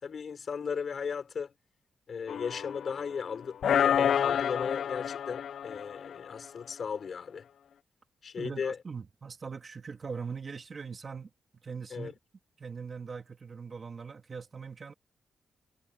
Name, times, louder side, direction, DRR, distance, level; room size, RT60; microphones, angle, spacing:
voice 1, 0.0-1.5 2.1-7.4 8.2-8.8 11.9-12.1, left 6 dB, 55° left, 4.0 m, -36 dB
sound 1, 2.3-3.2 3.6-6.4, left 8 dB, 70° left, 0.5 m, -29 dB
voice 2, 8.4-11.3 11.6-12.1 12.6-14.9, right 5 dB, 40° right, 2.4 m, -41 dB
cardioid pair, 90°, 0 cm